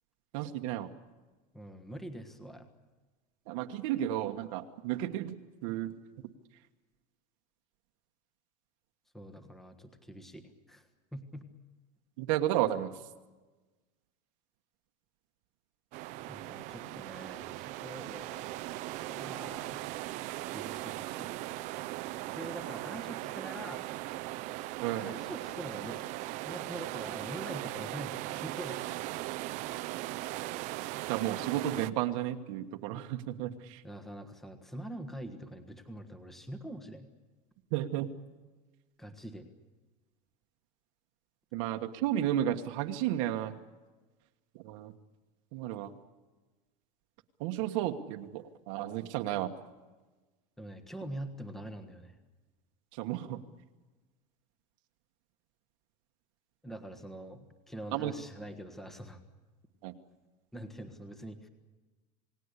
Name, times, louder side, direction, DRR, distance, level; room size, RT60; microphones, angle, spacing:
voice 1, 0.3-0.9 3.5-5.4 5.6-5.9 12.2-12.9 24.8-25.1 31.1-33.8 37.7-38.1 41.5-43.5 44.5-44.9 45.5-45.9 47.4-49.5 53.0-53.4 57.9-58.1 59.8-59.9, right 12 dB, 55° right, 5 dB, 1.5 m, -32 dB
voice 2, 1.5-2.7 9.1-11.5 16.3-19.8 20.5-21.4 22.3-23.8 24.9-26.0 26.4-28.8 33.8-37.1 39.0-39.5 50.6-52.2 56.6-59.2 60.5-61.5, right 1 dB, ahead, 6 dB, 1.4 m, -44 dB
sound 1, 15.9-31.9, right 17 dB, 40° right, 0.8 m, -39 dB
28.5 x 19.0 x 8.3 m, 1.2 s
supercardioid pair, 180°, 20 cm